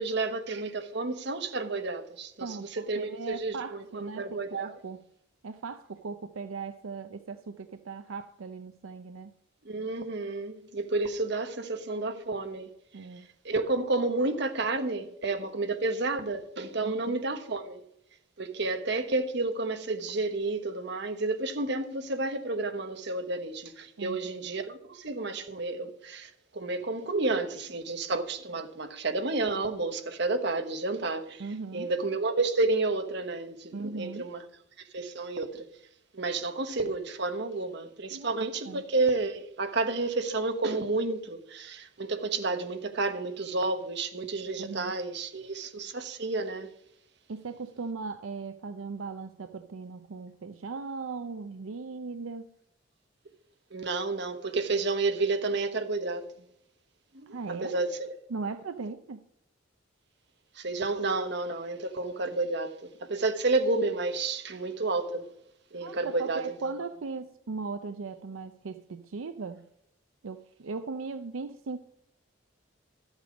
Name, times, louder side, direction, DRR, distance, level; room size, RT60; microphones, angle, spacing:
voice 1, 0.0-4.7 9.6-12.7 13.4-17.8 18.4-31.5 31.7-34.4 34.9-35.7 36.1-46.7 53.7-56.2 57.1-58.1 60.6-65.3 65.7-66.7, right 3 dB, 55° right, 1.2 m, -31 dB
voice 2, 2.4-5.0 5.4-9.3 12.9-13.3 16.8-17.2 24.0-24.2 31.4-31.9 33.7-34.3 38.1-38.4 38.7-38.8 44.6-44.9 47.3-52.5 57.3-57.9 58.3-59.2 65.8-69.7 70.2-71.8, right 4 dB, 80° right, 0.6 m, -38 dB
12.5 x 8.1 x 5.2 m
head